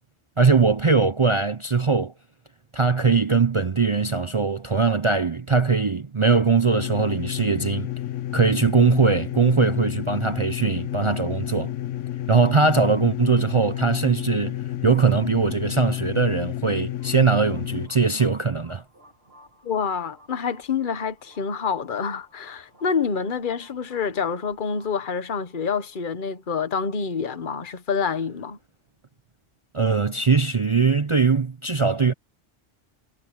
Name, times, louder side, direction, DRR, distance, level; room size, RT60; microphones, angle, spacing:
voice 1, 0.4-2.1 2.7-7.9 8.3-11.7 12.3-18.8 29.7-32.1, right 4 dB, 35° right, 0.5 m, -21 dB
sound 1, 6.7-17.9, left 13 dB, 85° left, 1.1 m, -31 dB
sound 2, 16.6-27.7, equal, 55° right, 5.1 m, -56 dB
voice 2, 19.6-28.6, left 6 dB, 45° left, 1.3 m, -27 dB
omnidirectional pair, 1.2 m